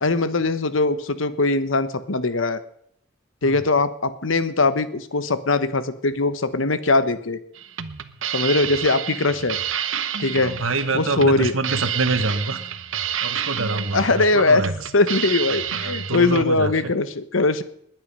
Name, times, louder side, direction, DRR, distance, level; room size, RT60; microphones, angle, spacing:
voice 1, 0.0-2.6 3.4-7.4 8.3-9.6 10.2-10.5 10.9-11.5 13.9-14.6 14.9-17.6, left 3 dB, 75° left, 12 dB, 1.1 m, -21 dB
sound 1, 7.5-16.4, right 9 dB, 75° right, 1.0 m, -29 dB
voice 2, 10.4-12.6 13.2-14.9 15.7-16.9, right 3 dB, 90° right, 10 dB, 1.5 m, -26 dB
20.5 x 9.4 x 5.5 m, 0.68 s
head